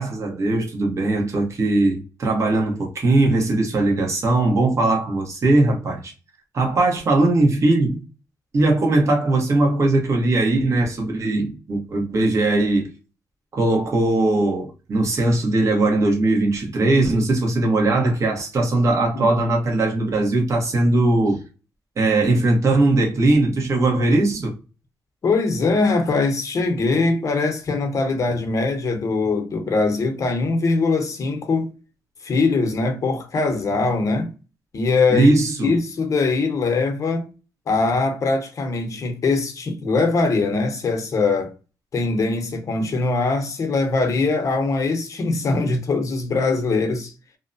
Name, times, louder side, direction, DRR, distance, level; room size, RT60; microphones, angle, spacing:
voice 1, 0.0-6.1 6.5-8.0 8.5-12.9 13.5-21.4 22.0-24.5 35.1-35.7, right 2 dB, 45° right, 1.0 m, -19 dB
voice 2, 25.2-31.7 32.2-34.3 34.7-35.3 35.6-37.3 37.7-41.5 41.9-47.1, left 3 dB, 45° left, 0.8 m, -22 dB
2.7 x 2.1 x 2.5 m
cardioid pair, 95°, 7 cm